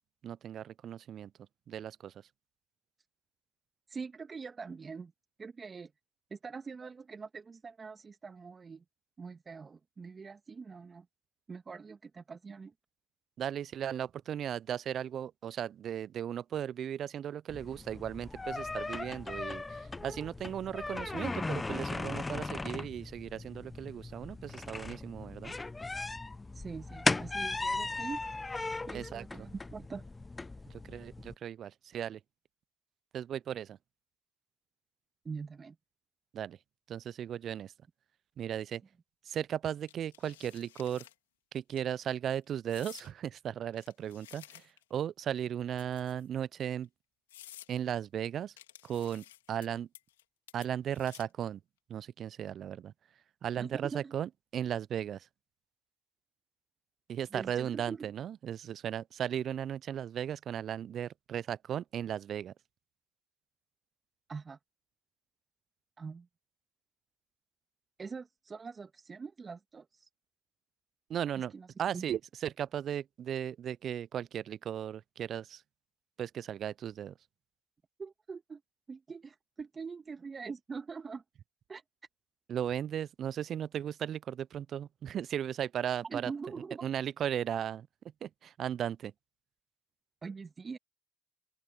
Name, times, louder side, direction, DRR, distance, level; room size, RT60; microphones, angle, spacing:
voice 1, 0.2-1.3 1.7-2.1 13.4-25.5 28.9-29.5 30.7-32.2 33.1-33.8 36.3-36.6 36.9-37.7 38.4-38.8 39.3-41.1 41.5-46.9 47.7-48.5 48.8-49.9 50.5-51.6 51.9-52.9 53.4-55.3 57.1-62.5 71.1-71.5 71.8-75.6 76.2-77.1 82.5-86.3 86.8-87.9 88.2-89.1, right 9 dB, 60° right, 0.5 m, -36 dB
voice 2, 3.9-5.1 5.4-5.9 6.3-8.8 9.2-11.1 11.5-12.7 26.5-28.2 28.9-30.0 35.3-35.8 53.6-54.1 57.3-58.1 64.3-64.6 66.0-66.3 68.0-70.1 71.3-71.7 71.9-72.0 78.0-78.6 78.9-81.2 81.7-81.8 86.0-86.9 90.2-90.8, right 5 dB, 35° right, 1.8 m, -43 dB
sound 1, 17.5-31.3, left 3 dB, 20° left, 0.6 m, -37 dB
sound 2, 39.9-41.1 41.6-41.8 42.7-43.1 43.7-44.9 45.7-46.3 46.8-46.9 47.3-47.7 48.6-49.7 49.9-50.2 50.5-51.4, left 14 dB, 90° left, 2.9 m, -53 dB
open air
hypercardioid pair, 50°, 0 cm